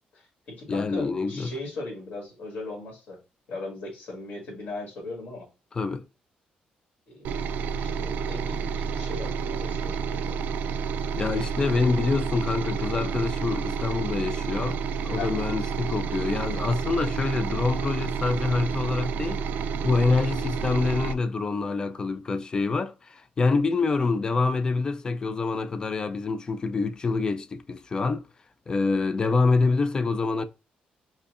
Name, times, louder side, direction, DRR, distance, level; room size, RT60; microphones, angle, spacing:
voice 1, 0.1-3.2 3.5-5.5 7.1-10.4 15.2-15.5, left 2 dB, 65° left, 1.9 m, -38 dB
voice 2, 0.7-1.5 5.7-6.1 11.2-19.4 19.8-28.2 28.7-30.5, left 4 dB, 25° left, 0.4 m, -26 dB
sound 1, 7.2-21.1, right 6 dB, 75° right, 0.3 m, -30 dB
5.4 x 2.2 x 2.4 m
cardioid pair, 135°, 3 cm